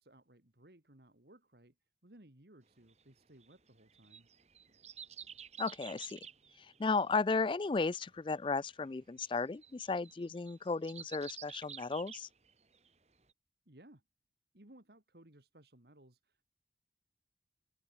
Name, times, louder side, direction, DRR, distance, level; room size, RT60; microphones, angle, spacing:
voice 1, 0.0-4.3 13.7-14.0 14.5-16.4, right 1 dB, 65° right, 2.4 m, -61 dB
sound 1, 2.9-12.9 13.3-13.4, right 8 dB, 40° right, 3.5 m, -52 dB
voice 2, 5.6-6.2 6.8-12.3, left 4 dB, 30° left, 0.3 m, -34 dB
open air
head